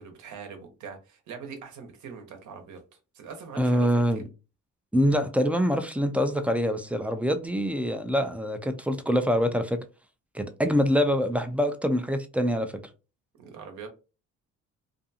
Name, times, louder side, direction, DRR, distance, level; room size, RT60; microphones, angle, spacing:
voice 1, 0.0-2.8 3.1-3.9 4.1-4.2 13.4-13.9, right 6 dB, 75° right, 0.8 m, -42 dB
voice 2, 3.6-4.2 4.9-9.8 10.3-12.7, equal, 5° right, 0.3 m, -25 dB
2.5 x 2.3 x 2.7 m
cardioid pair, 90°, 30 cm